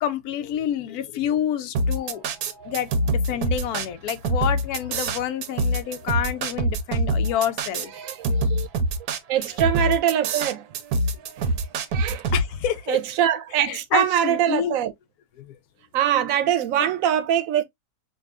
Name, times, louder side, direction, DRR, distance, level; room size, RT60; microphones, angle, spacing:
voice 1, 0.0-2.2 2.6-7.9 12.3-13.0 13.7-14.7 15.4-15.6 16.8-16.9, left 9 dB, 75° left, 1.1 m, -28 dB
sound 1, 1.7-12.4, right 1 dB, 85° right, 1.2 m, -24 dB
voice 2, 8.0-8.7 9.3-10.7 11.4-11.6 11.9-12.3 12.9-14.9 15.9-17.6, right 10 dB, 65° right, 1.0 m, -23 dB
5.2 x 2.3 x 2.4 m
omnidirectional pair, 1.7 m